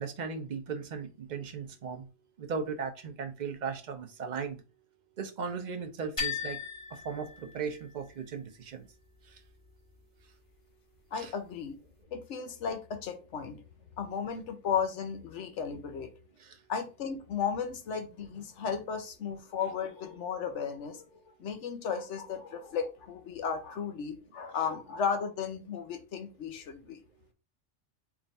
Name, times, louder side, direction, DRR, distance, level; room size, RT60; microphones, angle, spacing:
voice 1, 0.0-2.1 2.4-4.6 5.2-6.6 6.9-8.9 9.2-9.4 11.1-11.3 16.4-16.6, right 5 dB, 45° right, 6 dB, 0.7 m, -37 dB
sound 1, 6.2-8.1, left 6 dB, 25° left, 1.3 m, -37 dB
voice 2, 11.1-11.8 12.1-13.6 14.0-16.1 16.7-21.0 21.4-27.0, left 6 dB, 70° left, 7 dB, 1.0 m, -35 dB
3.6 x 2.4 x 4.0 m, 0.31 s
omnidirectional pair, 1.3 m